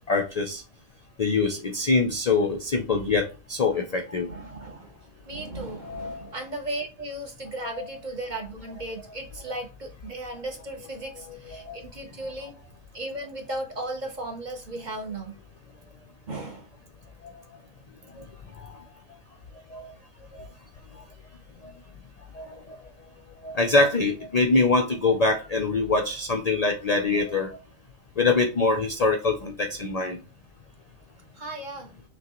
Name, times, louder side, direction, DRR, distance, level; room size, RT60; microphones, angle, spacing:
voice 1, 0.1-0.6 1.2-4.7 5.8-6.3 7.6-7.8 11.5-11.8 18.2-18.3 18.6-18.7 19.7-19.9 20.4-20.5 21.6-21.7 22.3-22.8 23.4-27.6 28.2-30.2, left 3 dB, 70° left, 0.3 m, -24 dB
voice 2, 4.3-4.9 5.3-12.5 12.9-15.3 16.3-16.7 31.4-31.9, right 2 dB, 45° right, 0.7 m, -36 dB
6.0 x 2.3 x 2.9 m
omnidirectional pair, 1.4 m